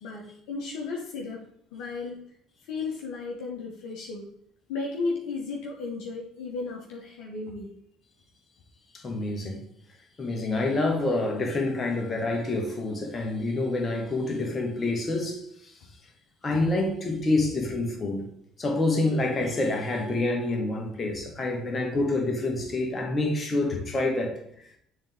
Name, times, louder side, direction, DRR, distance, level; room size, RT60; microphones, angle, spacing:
voice 1, 0.0-1.4 1.7-2.2 2.6-4.3 4.7-7.7 16.5-16.6 17.6-17.7, left 4 dB, 65° left, 1.1 m, -34 dB
voice 2, 8.9-9.6 10.2-15.7 16.4-18.3 18.6-24.4, left 2 dB, 35° left, 1.5 m, -27 dB
7.3 x 3.6 x 3.6 m
hypercardioid pair, 55°, 0 cm